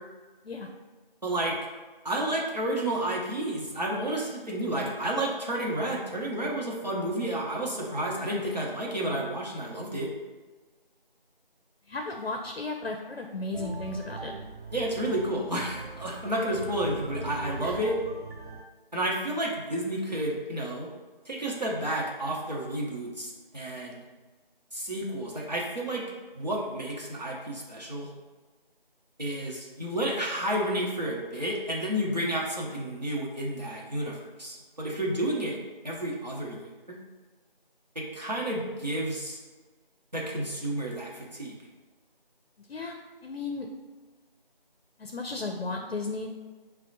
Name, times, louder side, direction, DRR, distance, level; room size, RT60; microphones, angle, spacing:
voice 1, 1.2-1.6 2.0-10.1 14.7-18.0 18.9-20.9 21.3-24.0 24.7-26.0 26.4-28.1 29.2-35.6 35.8-37.0 37.9-39.4 40.1-41.5, right 1 dB, 45° right, -3 dB, 0.8 m, -31 dB
voice 2, 11.9-14.3 17.6-17.8 42.7-43.0 43.2-43.7 45.0-46.3, left 3 dB, 85° left, 3 dB, 0.5 m, -34 dB
sound 1, 13.5-18.6, right 3 dB, 85° right, 0.6 m, -40 dB
5.2 x 2.1 x 2.7 m, 1.3 s
figure-of-eight pair, 175°, 29 cm